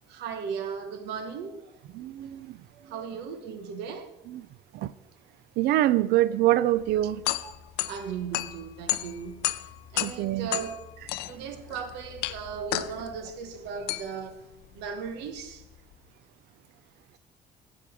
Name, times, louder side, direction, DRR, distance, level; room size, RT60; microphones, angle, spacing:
voice 1, 0.1-1.8 2.3-2.4 2.7-4.2 7.4-7.5 7.9-10.8 11.2-14.4 14.7-15.6, right 6 dB, 90° right, 1.0 m, -37 dB
voice 2, 1.9-2.6 4.3-4.4 4.7-4.9 5.6-7.2 10.0-10.5, right 14 dB, 70° right, 0.4 m, -25 dB
sound 1, 6.8-15.9, left 16 dB, 85° left, 0.4 m, -34 dB
7.7 x 7.1 x 4.9 m
cardioid pair, 110°, 17 cm